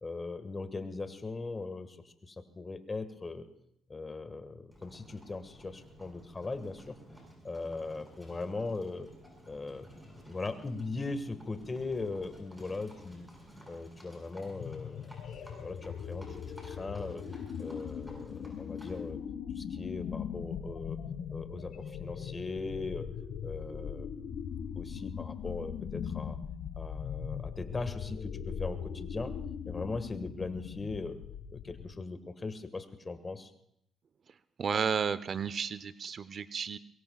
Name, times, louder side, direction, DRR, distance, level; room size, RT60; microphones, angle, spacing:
voice 1, 0.0-3.5 3.9-6.9 7.4-9.1 9.5-9.9 10.3-13.3 13.7-15.1 15.6-17.3 17.6-19.2 19.5-21.0 21.3-23.1 23.4-24.2 24.7-26.4 26.8-29.3 29.7-31.2 31.5-33.5, left 3 dB, 25° left, 9 dB, 1.6 m, -39 dB
Livestock farm animals working animals, 4.7-19.1, equal, 5° right, 7.7 m, -54 dB
sound 1, 14.6-32.0, left 7 dB, 70° left, 1.5 m, -40 dB
voice 2, 34.6-36.8, right 6 dB, 50° right, 16 dB, 0.6 m, -32 dB
23.0 x 22.5 x 2.4 m, 0.75 s
cardioid pair, 90°, 0 cm